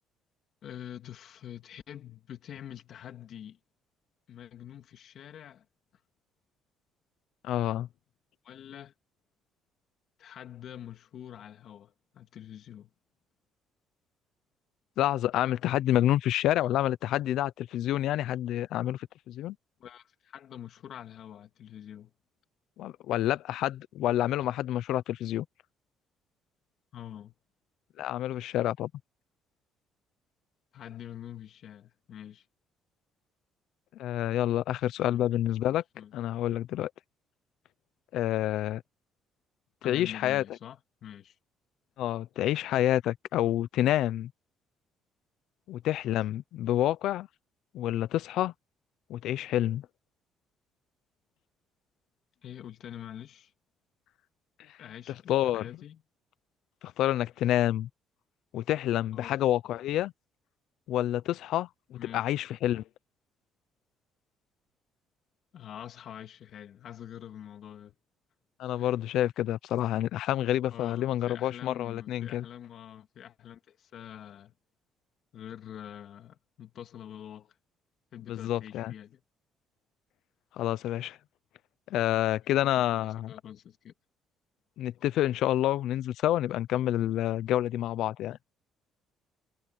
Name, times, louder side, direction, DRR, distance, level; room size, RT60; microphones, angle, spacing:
voice 1, 0.6-3.6 4.3-5.7 8.4-8.9 10.2-12.9 19.8-22.1 26.9-27.3 30.7-32.4 35.0-35.3 35.9-36.1 39.8-41.4 52.4-53.5 54.8-56.0 59.1-59.3 62.0-62.2 65.5-67.9 68.8-68.9 70.7-74.5 75.3-77.5 78.1-79.2 82.6-83.9, left 10 dB, 55° left, 2.3 m, -45 dB
voice 2, 7.4-7.9 15.0-19.6 22.8-25.5 28.0-28.9 33.9-35.8 36.1-36.9 38.1-38.8 39.8-40.4 42.0-44.3 45.7-47.3 47.7-48.5 49.1-49.9 55.3-55.7 56.8-57.9 58.5-60.1 60.9-62.8 68.6-72.4 78.3-78.9 80.5-81.2 81.9-83.3 84.8-88.4, left 13 dB, 75° left, 0.7 m, -28 dB
cardioid pair, 130°, 0 cm